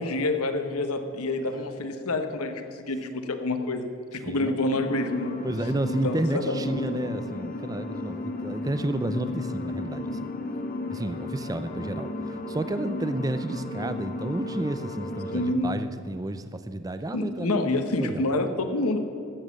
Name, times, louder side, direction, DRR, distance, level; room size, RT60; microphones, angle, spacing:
voice 1, 0.0-3.8 4.1-5.3 6.0-6.6 15.3-15.8 17.1-19.0, left 2 dB, 80° left, 7 dB, 1.1 m, -27 dB
sound 1, 4.7-15.5, left 2 dB, 40° left, 0.8 m, -34 dB
voice 2, 5.4-10.3 10.9-18.2, right 1 dB, 15° right, 11 dB, 0.4 m, -31 dB
14.0 x 7.2 x 7.3 m, 2.9 s
head